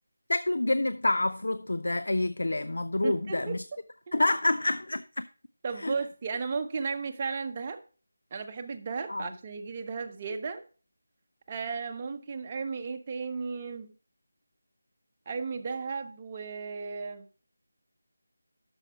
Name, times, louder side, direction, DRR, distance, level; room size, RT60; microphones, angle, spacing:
voice 1, 0.3-3.6 4.1-5.3 5.8-5.9 9.1-9.3, left 2 dB, 75° left, 0.4 m, -28 dB
voice 2, 3.0-3.6 4.1-4.3 5.6-7.8 8.3-10.6 11.5-13.9 15.3-17.3, right 5 dB, 30° right, 0.8 m, -35 dB
9.0 x 6.3 x 4.7 m
figure-of-eight pair, 165°, 0 cm